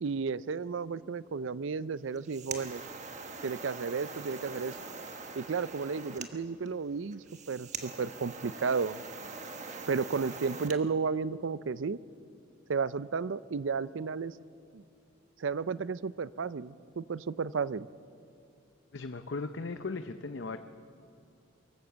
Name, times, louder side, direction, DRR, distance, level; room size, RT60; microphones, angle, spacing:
voice 1, 0.0-2.8 3.4-4.8 5.4-9.0 9.9-12.0 12.7-14.4 14.7-14.8 15.4-17.9, right 5 dB, 70° right, 18 dB, 0.5 m, -33 dB
sound 1, 2.0-10.8, right 4 dB, 35° right, 1.2 m, -43 dB
voice 2, 18.9-20.6, left 3 dB, 60° left, 9 dB, 0.7 m, -37 dB
23.5 x 14.5 x 8.0 m, 2.5 s
head